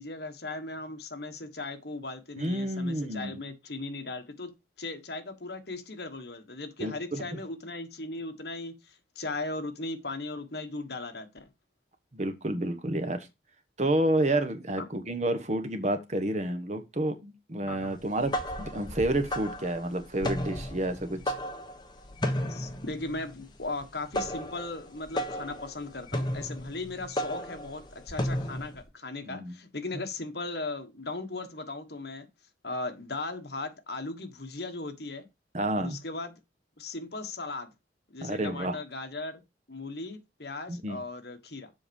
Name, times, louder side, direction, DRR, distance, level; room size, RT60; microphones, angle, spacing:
voice 1, 0.0-4.5 4.8-11.5 14.8-14.9 17.7-17.9 22.5-32.3 32.6-35.3 35.7-36.3 36.8-37.7 38.1-39.4 39.7-41.7, left 2 dB, 65° left, 1.4 m, -37 dB
voice 2, 2.4-3.4 6.8-7.2 12.1-13.2 13.8-21.3 29.2-29.5 35.5-36.0 38.2-38.8 40.7-41.0, right 1 dB, 40° right, 1.2 m, -30 dB
sound 1, 18.0-28.8, equal, 25° left, 1.2 m, -34 dB
7.5 x 5.2 x 5.3 m
head